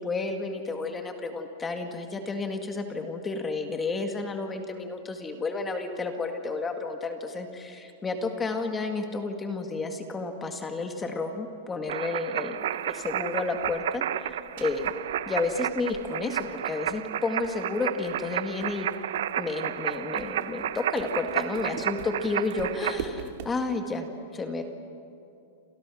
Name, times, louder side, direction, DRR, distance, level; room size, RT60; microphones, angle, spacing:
voice 1, 0.0-14.9 15.3-18.9 19.4-24.1 24.3-24.6, left 3 dB, 10° left, 5 dB, 1.9 m, -31 dB
sound 1, 11.9-23.0, right 11 dB, 75° right, 0.8 m, -32 dB
sound 2, 12.6-23.7, right 8 dB, 50° right, 2.5 m, -45 dB
29.0 x 28.0 x 6.3 m, 2.7 s
supercardioid pair, 165°, 0 cm